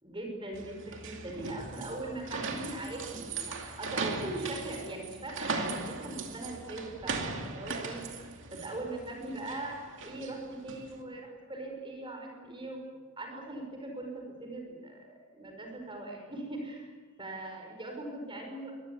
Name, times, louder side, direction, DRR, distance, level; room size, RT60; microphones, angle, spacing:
voice 1, 0.0-8.0 8.3-12.8 13.2-16.9 17.2-18.7, right 2 dB, 25° right, 1 dB, 5.1 m, -40 dB
sound 1, 0.5-11.0, right 3 dB, 60° right, 2.5 m, -39 dB
23.5 x 19.5 x 8.5 m, 1.4 s
head